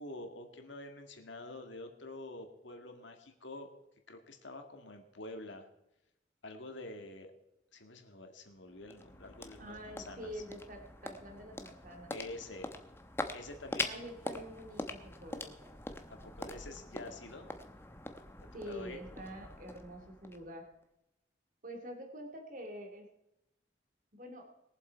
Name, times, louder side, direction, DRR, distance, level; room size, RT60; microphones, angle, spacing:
voice 1, 0.0-3.7 4.1-5.7 6.4-7.3 7.7-10.4 12.1-12.7 13.3-14.0 16.1-17.5 18.7-19.0, left 2 dB, 70° left, 5 dB, 2.0 m, -47 dB
sound 1, 8.4-20.8, left 2 dB, 10° left, 0.9 m, -44 dB
voice 2, 9.6-12.1 13.8-15.7 18.5-20.6 21.6-23.1 24.1-24.4, equal, 40° right, 3 dB, 2.5 m, -46 dB
21.0 x 7.6 x 4.6 m, 0.85 s
head